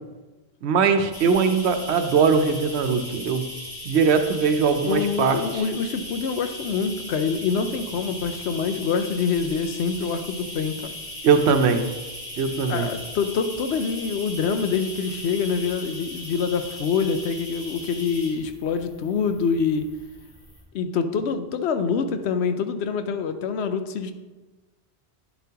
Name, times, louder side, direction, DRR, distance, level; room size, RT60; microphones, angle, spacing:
voice 1, 0.6-3.5 3.9-5.4 11.2-11.9 12.4-12.9, right 5 dB, 90° right, 8 dB, 1.0 m, -20 dB
sound 1, 1.1-20.6, left 1 dB, 50° left, 2.6 m, -38 dB
voice 2, 4.8-10.9 12.7-19.9 20.7-24.1, left 5 dB, 85° left, 8 dB, 0.9 m, -25 dB
9.1 x 7.0 x 2.9 m, 1.2 s
omnidirectional pair, 1.1 m